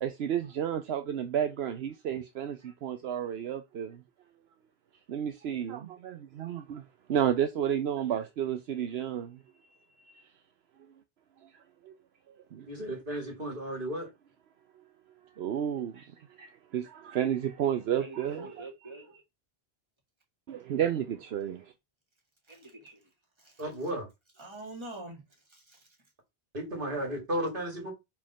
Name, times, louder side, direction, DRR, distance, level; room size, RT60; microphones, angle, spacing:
voice 1, 0.0-4.0 5.1-9.4 10.0-10.3 11.4-11.5 11.8-11.9 12.3-12.7 15.4-18.7 20.5-21.7, right 9 dB, 75° right, 0.9 m, -32 dB
voice 2, 12.7-14.1 23.6-24.1 26.5-27.9, right 1 dB, 55° right, 2.4 m, -34 dB
voice 3, 18.0-19.2 22.5-23.1 23.4-23.6 24.4-25.2 25.5-25.9, right 2 dB, 25° right, 2.1 m, -45 dB
5.0 x 3.7 x 5.6 m
omnidirectional pair, 1.1 m